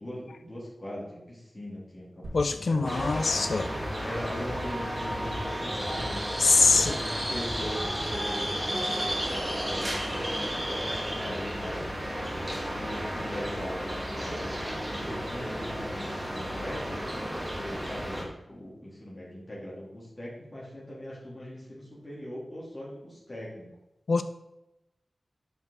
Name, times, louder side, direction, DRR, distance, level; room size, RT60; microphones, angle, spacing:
voice 1, 0.0-2.9 4.0-14.5 14.9-17.0 17.6-23.7, left 1 dB, 35° left, -6 dB, 3.4 m, -40 dB
sound 1, 2.2-8.9, equal, 75° right, 2.6 m, -42 dB
voice 2, 2.3-3.7 6.4-6.9 24.1-24.2, left 4 dB, 80° left, 10 dB, 0.6 m, -23 dB
sound 2, 2.8-18.2, equal, 20° right, 2.4 m, -33 dB
10.5 x 5.5 x 4.1 m, 0.90 s
wide cardioid pair, 85°, 0 cm